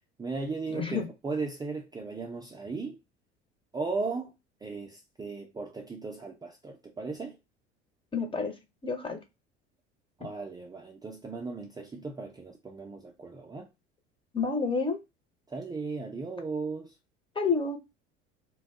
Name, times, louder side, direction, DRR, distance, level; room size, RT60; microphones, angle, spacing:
voice 1, 0.2-3.0 3.7-4.3 4.6-7.4 10.2-13.7 15.5-16.9, right 4 dB, 10° right, 0.5 m, -36 dB
voice 2, 0.7-1.1 8.1-8.5 8.8-9.2 14.3-15.0 17.3-17.8, left 4 dB, 15° left, 0.8 m, -29 dB
2.6 x 2.3 x 3.5 m
figure-of-eight pair, 65°, 34 cm